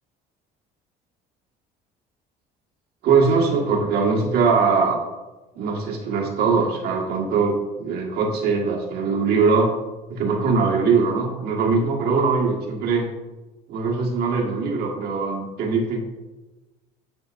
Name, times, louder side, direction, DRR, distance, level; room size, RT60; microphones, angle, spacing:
voice 1, 3.0-5.0 5.6-9.7 10.1-13.1 13.7-16.0, right 4 dB, 70° right, -1 dB, 1.7 m, -21 dB
11.0 x 4.4 x 2.6 m, 1.1 s
cardioid pair, 115°, 17 cm